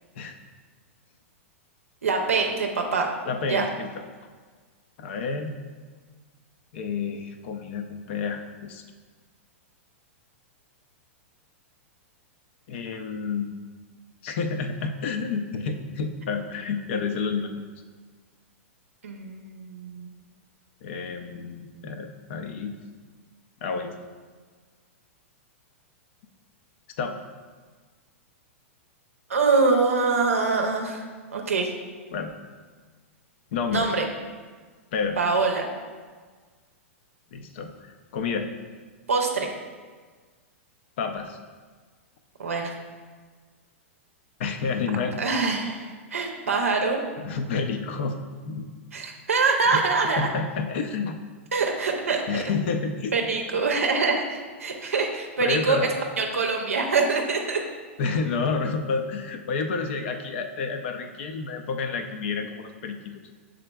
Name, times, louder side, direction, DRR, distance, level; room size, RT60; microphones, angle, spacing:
voice 1, 2.0-3.1 3.5-3.7 19.0-20.1 29.3-31.1 31.3-31.7 33.7-34.0 35.2-35.7 39.1-39.5 42.4-42.7 45.2-47.0 48.9-50.3 51.5-52.4 53.1-55.9 56.2-57.6, right 4 dB, 85° right, 2 dB, 0.5 m, -24 dB
voice 2, 3.3-3.9 5.0-5.6 6.7-8.8 12.7-13.5 14.2-17.5 20.8-22.8 23.6-24.0 27.0-27.2 32.1-32.3 33.5-33.9 34.9-35.2 37.3-37.8 38.1-38.5 41.0-41.4 44.4-45.2 47.2-48.2 48.5-48.7 49.7-49.8 50.2-51.2 52.3-53.1 55.4-55.9 58.0-63.2, left 5 dB, 60° left, 6 dB, 0.5 m, -29 dB
5.8 x 3.7 x 2.2 m, 1.5 s
hypercardioid pair, 110°, 7 cm